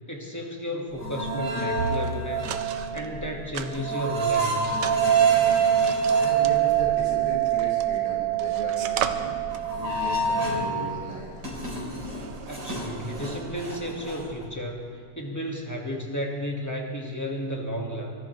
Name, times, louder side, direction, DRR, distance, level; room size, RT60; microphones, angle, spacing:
voice 1, 0.1-4.7 12.2-18.1, equal, 10° left, -1 dB, 0.9 m, -33 dB
sound 1, 0.9-10.8 11.2-14.4, right 7 dB, 40° right, 4.3 m, -26 dB
sound 2, 1.7-3.1 3.5-8.0 8.3-13.8, right 6 dB, 80° right, 1.2 m, -37 dB
voice 2, 5.8-9.4 9.8-11.3, equal, 80° left, -6 dB, 5.5 m, -37 dB
24.5 x 18.0 x 3.2 m, 2.2 s
omnidirectional pair, 3.3 m